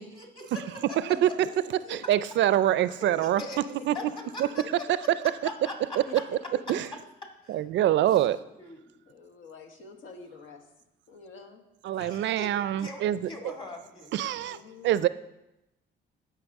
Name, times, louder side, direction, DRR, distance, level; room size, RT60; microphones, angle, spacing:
voice 1, 0.0-1.0 3.0-3.6 3.9-4.0 4.3-5.1 5.4-6.5 7.4-7.6 8.6-9.0 12.0-12.5 12.8-14.6, left 2 dB, 25° left, 2.0 m, -42 dB
voice 2, 1.1-1.5 1.8-2.0 3.4-3.5 3.8-4.1 4.6-4.7 6.0-6.6 8.0-8.1 9.1-10.7 11.1-11.6 14.5-15.0, left 4 dB, 80° left, 1.3 m, -47 dB
voice 3, 1.9-3.4 3.9-4.0 4.4-4.5 6.7-6.9 7.5-8.4 11.8-13.2 14.1-14.6 14.8-15.1, right 12 dB, 65° right, 0.4 m, -24 dB
15.0 x 5.7 x 3.6 m
cardioid pair, 90°, 20 cm